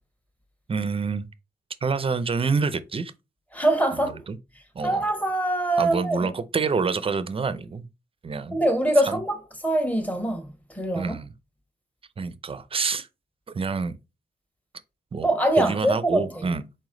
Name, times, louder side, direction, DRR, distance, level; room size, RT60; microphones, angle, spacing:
voice 1, 0.7-1.3 1.8-3.1 3.9-4.4 4.7-5.0 5.8-7.9 8.2-8.6 9.0-9.2 11.0-11.3 12.2-13.1 13.5-14.0 15.1-15.3 15.6-16.7, right 5 dB, 30° right, 0.5 m, -27 dB
voice 2, 3.5-4.2 4.8-6.3 8.5-11.1 15.2-16.5, right 1 dB, 10° left, 1.1 m, -24 dB
4.3 x 3.1 x 3.7 m
wide cardioid pair, 105°, 17 cm